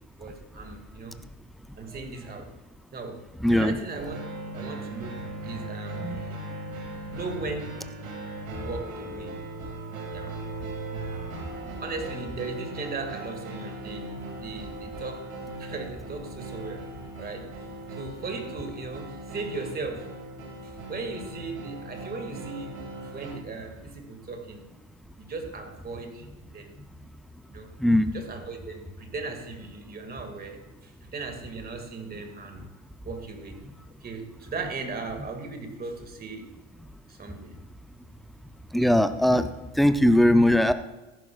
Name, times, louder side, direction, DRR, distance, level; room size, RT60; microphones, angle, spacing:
voice 1, 0.2-1.2 1.8-2.5 2.9-3.2 3.5-4.2 4.5-6.4 7.1-7.9 8.5-9.4 10.1-10.4 11.8-15.3 15.6-16.8 17.2-17.5 18.0-20.1 20.6-24.7 25.2-26.3 26.5-26.8 27.5-27.7 28.1-32.6 33.0-33.6 34.0-36.5 37.1-37.5, right 3 dB, 20° right, 5 dB, 2.1 m, -37 dB
voice 2, 3.4-3.8 6.0-6.2 27.8-28.1 38.7-39.5 39.8-40.7, left 1 dB, ahead, 10 dB, 0.4 m, -20 dB
sound 1, 3.9-23.4, right 1 dB, 80° right, 2.2 m, -38 dB
15.0 x 11.5 x 2.4 m, 1.1 s
hypercardioid pair, 90°, 40 cm